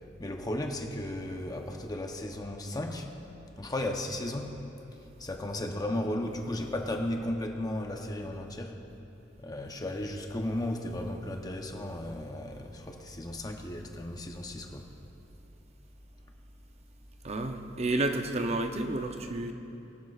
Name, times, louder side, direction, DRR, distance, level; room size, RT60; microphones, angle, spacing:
voice 1, 0.2-3.1 3.6-4.5 5.2-8.7 9.4-14.8, left 1 dB, 20° left, 3 dB, 0.8 m, -35 dB
voice 2, 17.2-19.5, right 2 dB, 35° right, 6 dB, 0.6 m, -30 dB
22.0 x 11.5 x 2.4 m, 3.0 s
head